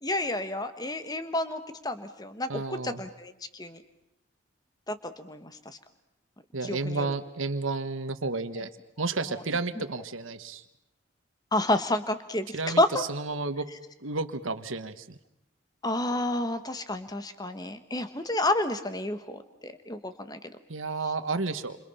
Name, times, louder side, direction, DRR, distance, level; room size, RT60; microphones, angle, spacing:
voice 1, 0.0-3.8 4.9-5.8 6.6-7.1 9.3-9.4 11.5-13.0 15.8-20.6, left 1 dB, 20° left, 10 dB, 1.4 m, -30 dB
voice 2, 2.5-3.0 6.5-8.7 9.0-10.6 12.5-13.6 14.0-15.2 20.7-21.8, right 3 dB, 90° right, 11 dB, 1.4 m, -31 dB
29.0 x 27.0 x 5.7 m, 0.81 s
head